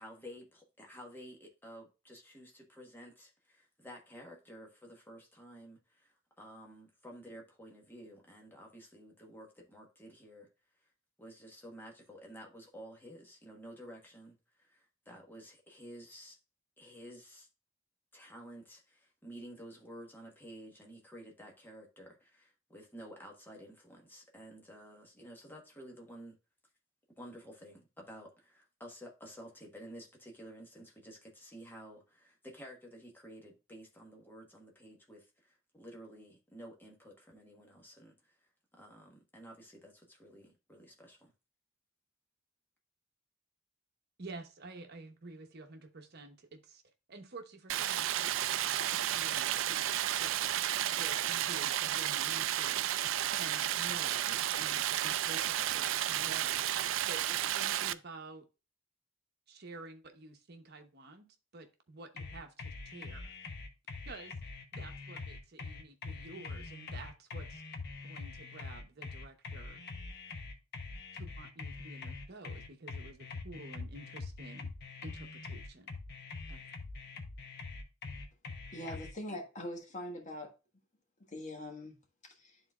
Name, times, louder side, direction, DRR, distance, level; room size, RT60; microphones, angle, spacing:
voice 1, 0.0-10.5 11.2-16.4 16.8-17.5 18.1-26.4 27.2-41.3, equal, 10° left, 1.3 m, -52 dB
voice 2, 44.2-46.8 47.1-49.9 50.2-50.5 50.8-52.9 53.4-56.7 57.1-58.5 59.5-61.3 61.5-63.4 64.1-64.3 64.7-67.6 68.0-69.8 71.1-74.7 75.0-76.0 76.5-76.6, right 2 dB, 55° right, 1.0 m, -50 dB
Stream, 47.7-57.9, right 12 dB, 70° right, 0.3 m, -32 dB
sound 1, 62.2-79.1, left 3 dB, 55° left, 0.9 m, -44 dB
voice 3, 78.7-80.5 81.3-82.0 82.2-82.6, left 1 dB, 40° left, 1.5 m, -43 dB
12.0 x 3.9 x 2.3 m
head